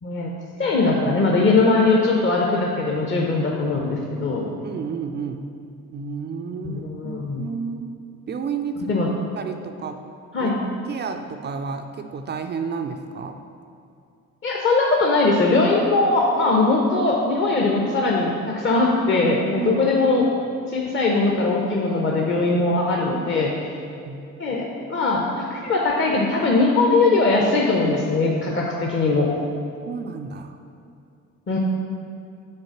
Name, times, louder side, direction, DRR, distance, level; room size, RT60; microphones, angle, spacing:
voice 1, 0.6-4.4 6.6-7.5 8.9-9.1 10.3-10.6 14.4-20.3 20.7-23.5 24.4-29.3 31.5-31.6, left 3 dB, 30° left, -1 dB, 0.8 m, -20 dB
voice 2, 4.6-5.5 5.9-7.9 8.3-9.0 9.4-10.0 10.4-10.5 10.9-13.4 19.6-19.7 24.0-24.2 29.9-30.6, right 5 dB, 25° right, 6 dB, 0.4 m, -31 dB
6.5 x 4.0 x 5.9 m, 2.5 s
figure-of-eight pair, 50°, 41 cm